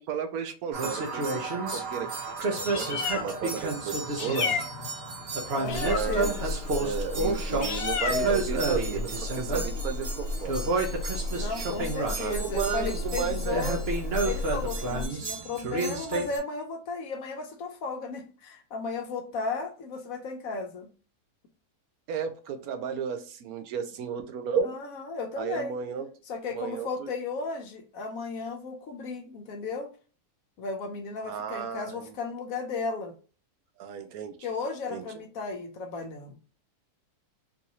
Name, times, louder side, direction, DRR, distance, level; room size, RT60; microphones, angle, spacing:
voice 1, 0.0-1.4 1.7-2.4 2.7-4.7 5.8-10.6 12.2-13.8 22.1-24.7 25.4-26.1 26.5-27.1 31.2-32.1 33.8-34.3 34.9-35.0, right 7 dB, 75° right, 8 dB, 1.0 m, -33 dB
sound 1, 0.7-16.4, right 3 dB, 50° right, 0.8 m, -31 dB
Meow, 2.5-15.1, left 3 dB, 85° left, 0.5 m, -33 dB
voice 2, 5.5-6.5 11.4-13.8 14.2-20.9 24.6-25.8 26.3-29.9 30.6-33.1 34.4-36.3, left 4 dB, 70° left, 5 dB, 1.0 m, -35 dB
3.9 x 2.6 x 2.8 m, 0.38 s
omnidirectional pair, 1.6 m